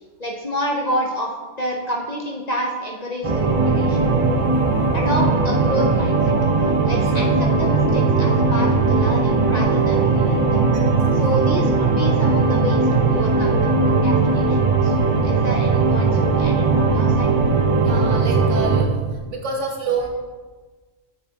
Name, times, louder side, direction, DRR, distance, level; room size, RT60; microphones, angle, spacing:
voice 1, 0.2-4.0 4.9-6.3 6.8-10.6 11.1-17.3, equal, 45° left, -1 dB, 0.6 m, -29 dB
sound 1, 3.2-18.8, right 3 dB, 40° right, 0.5 m, -18 dB
voice 2, 17.8-19.0 19.3-20.1, right 4 dB, 70° right, 1 dB, 1.4 m, -27 dB
7.1 x 6.5 x 3.5 m, 1.4 s
omnidirectional pair, 1.3 m